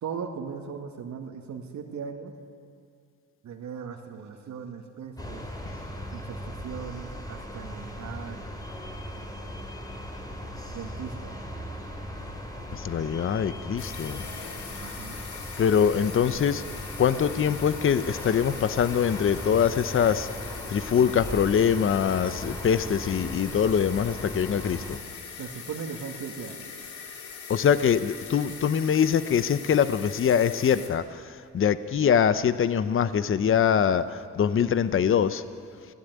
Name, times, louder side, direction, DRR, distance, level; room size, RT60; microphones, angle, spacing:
voice 1, 0.0-2.3 3.4-5.4 6.1-8.6 10.7-11.5 14.8-15.2 25.4-26.7, right 6 dB, 70° right, 2 dB, 2.2 m, -38 dB
sound 1, 5.2-25.0, equal, 10° left, 3.7 m, -38 dB
voice 2, 12.7-14.2 15.6-16.6 17.0-20.3 20.7-25.0 27.5-31.0 31.5-35.4, left 8 dB, 45° left, 13 dB, 0.9 m, -23 dB
sound 2, 13.8-30.9, left 6 dB, 75° left, 3.1 m, -41 dB
28.0 x 17.0 x 9.6 m, 2.3 s
cardioid pair, 90°, 30 cm